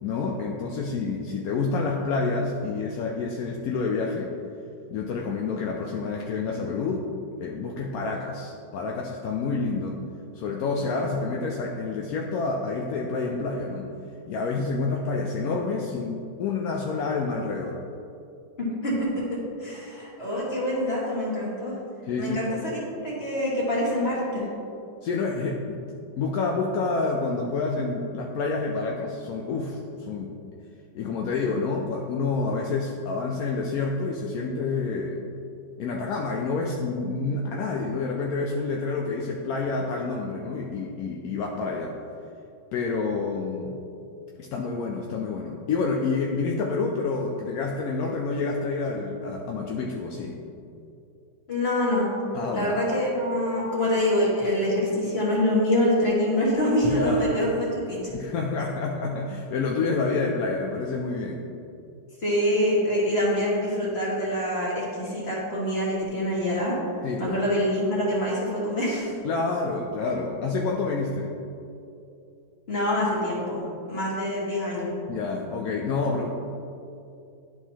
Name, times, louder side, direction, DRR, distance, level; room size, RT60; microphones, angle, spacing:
voice 1, 0.0-4.3 4.9-7.1 7.4-10.0 10.3-13.9 14.3-17.8 22.0-22.4 25.0-25.8 26.2-30.4 30.9-35.2 35.8-42.0 42.7-43.8 44.4-50.4 52.3-52.8 56.9-57.3 58.1-61.4 67.0-67.4 69.2-71.3 75.1-76.3, left 4 dB, 70° left, 0 dB, 0.9 m, -28 dB
voice 2, 18.6-21.8 22.2-24.5 51.5-52.1 52.5-58.2 62.2-66.8 67.2-69.1 72.7-74.9, left 1 dB, 35° left, -6 dB, 1.8 m, -25 dB
11.0 x 4.5 x 2.9 m, 2.7 s
omnidirectional pair, 1.9 m